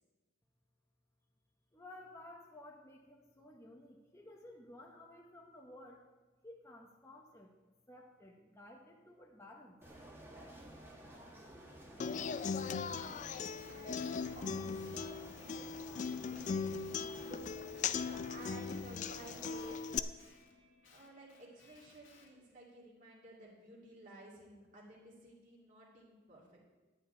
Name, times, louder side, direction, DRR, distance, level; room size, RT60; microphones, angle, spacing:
voice 1, 1.7-6.0 6.4-7.5 7.9-9.8, left 1 dB, 15° left, -1 dB, 0.9 m, -55 dB
sound 1, 9.8-19.8, right 1 dB, 10° right, 1.5 m, -54 dB
voice 2, 11.8-12.8 13.7-17.6 18.0-20.3 20.9-26.6, right 1 dB, 40° right, -5 dB, 2.4 m, -55 dB
Human voice / Acoustic guitar, 12.0-20.0, left 5 dB, 40° left, 0.3 m, -39 dB
Guitar, 12.9-17.4 17.7-22.3, left 4 dB, 70° left, 2.0 m, -64 dB
11.0 x 5.6 x 8.8 m, 1.2 s
head